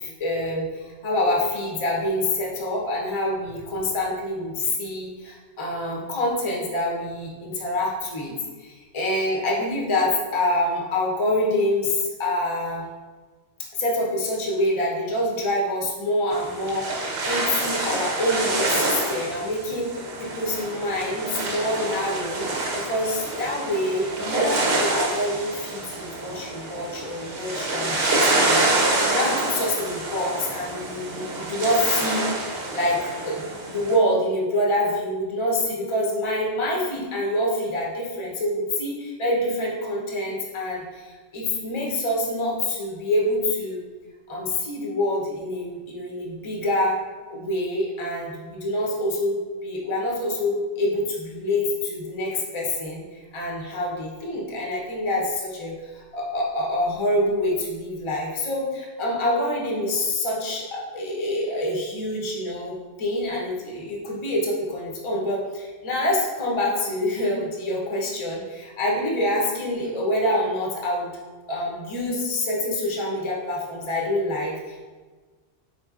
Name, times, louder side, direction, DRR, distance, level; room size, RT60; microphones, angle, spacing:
voice 1, 0.0-12.8 13.7-19.9 20.2-33.4 33.7-43.8 44.3-47.0 47.3-71.1 71.5-74.9, left 1 dB, 30° left, -3 dB, 0.6 m, -26 dB
sound 1, 16.3-34.0, right 2 dB, 60° right, 0.9 m, -27 dB
4.2 x 3.8 x 2.4 m, 1.4 s
omnidirectional pair, 1.2 m